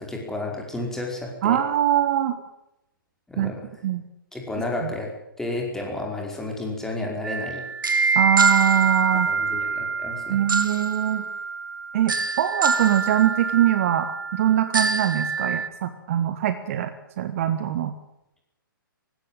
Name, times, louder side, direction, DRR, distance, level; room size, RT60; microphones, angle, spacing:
voice 1, 0.0-1.6 3.3-3.7 4.3-5.1 5.4-7.6 9.1-10.4, left 2 dB, 5° left, 0 dB, 5.1 m, -31 dB
voice 2, 1.4-2.4 3.4-3.5 3.8-4.0 4.8-4.9 8.1-9.3 10.3-11.2 11.9-16.9 17.2-17.9, right 11 dB, 40° right, 10 dB, 1.5 m, -23 dB
sound 1, 7.2-15.7, right 4 dB, 65° right, 2.6 m, -25 dB
20.0 x 16.0 x 8.9 m, 0.86 s
figure-of-eight pair, 125°, 12 cm